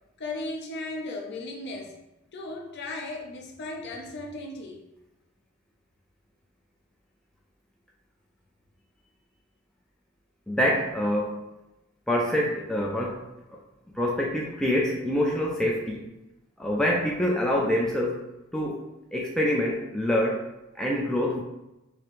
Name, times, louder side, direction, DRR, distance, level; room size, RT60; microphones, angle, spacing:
voice 1, 0.2-1.9 2.3-4.8, left 2 dB, 50° left, 1 dB, 0.6 m, -36 dB
voice 2, 10.5-11.4 12.1-13.2 14.0-16.0 16.6-18.2 18.5-18.9 19.1-20.4 20.8-21.4, left 1 dB, 5° left, -3 dB, 0.3 m, -25 dB
4.7 x 2.0 x 3.0 m, 0.93 s
head